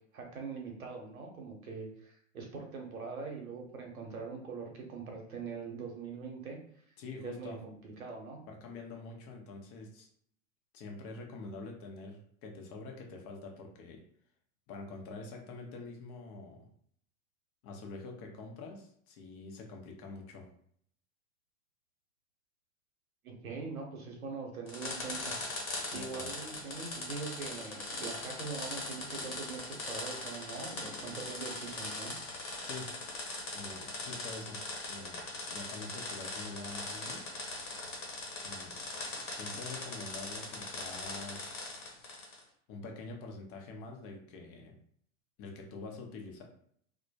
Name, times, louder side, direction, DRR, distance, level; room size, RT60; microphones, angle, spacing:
voice 1, 0.1-6.6 7.2-8.4 23.2-25.4 25.9-32.1, right 4 dB, 85° right, 1 dB, 0.8 m, -42 dB
voice 2, 7.0-7.6 8.5-10.1 10.7-14.0 14.7-16.7 17.6-20.5 25.9-26.3 32.6-33.0 33.5-34.6 34.9-37.3 38.4-38.7 39.3-41.5 42.7-44.8 45.4-46.4, left 3 dB, 35° left, 2 dB, 0.6 m, -46 dB
sound 1, 24.7-42.4, left 2 dB, 80° left, 1.1 m, -40 dB
2.1 x 2.1 x 2.7 m, 0.63 s
hypercardioid pair, 95°, 41 cm